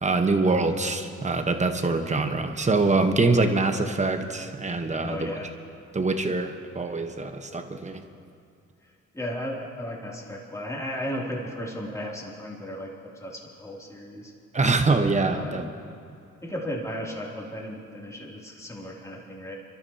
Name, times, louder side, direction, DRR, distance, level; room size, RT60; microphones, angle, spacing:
voice 1, 0.0-5.3 5.9-8.0 14.5-15.6, right 3 dB, 25° right, 6 dB, 1.1 m, -24 dB
voice 2, 5.0-5.5 9.1-14.3 15.3-15.7 16.4-19.5, equal, 10° left, -3 dB, 2.8 m, -35 dB
29.0 x 12.5 x 2.9 m, 2.6 s
cardioid pair, 90°, 30 cm